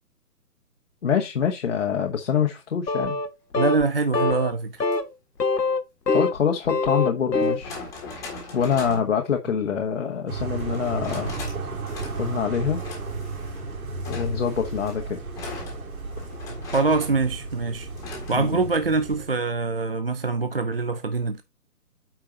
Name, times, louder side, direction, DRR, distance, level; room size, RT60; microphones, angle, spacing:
voice 1, 1.0-3.2 6.1-7.7 8.5-11.3 12.2-12.8 14.1-15.2 18.3-18.6, left 7 dB, 50° left, 1.2 m, -25 dB
sound 1, 2.9-3.3 3.5-3.8 4.1-4.5 4.8-5.0 5.4-6.4 6.7-7.6, left 3 dB, 85° left, 1.4 m, -23 dB
voice 2, 3.6-4.8 16.7-17.9 18.3-21.4, right 3 dB, 40° right, 0.5 m, -24 dB
sound 2, 4.8-5.0 6.5-6.6 7.4-9.1 10.6-11.6 11.9-12.4 12.8-13.6 14.0-17.2 18.0-18.4, left 3 dB, 5° left, 1.6 m, -39 dB
sound 3, 10.3-19.2, right 3 dB, 60° right, 3.3 m, -34 dB
9.0 x 4.8 x 3.9 m
hypercardioid pair, 160°, 47 cm